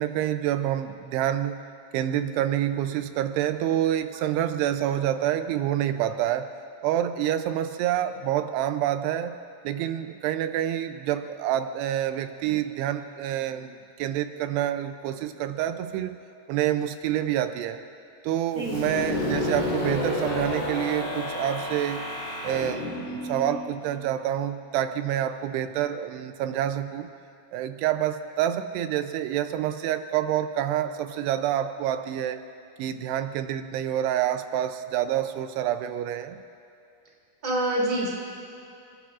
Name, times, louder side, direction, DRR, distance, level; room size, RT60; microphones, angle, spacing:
voice 1, 0.0-1.6 1.9-6.5 6.8-9.4 9.6-16.2 16.5-17.8 18.2-22.1 22.4-27.1 27.5-32.4 32.8-36.4, right 11 dB, 85° right, 9 dB, 2.6 m, -27 dB
sound 1, 18.6-24.2, left 2 dB, 45° left, 5.0 m, -31 dB
voice 2, 37.4-38.1, right 1 dB, 15° right, -3 dB, 2.1 m, -26 dB
29.5 x 16.0 x 2.4 m, 2.6 s
omnidirectional pair, 4.8 m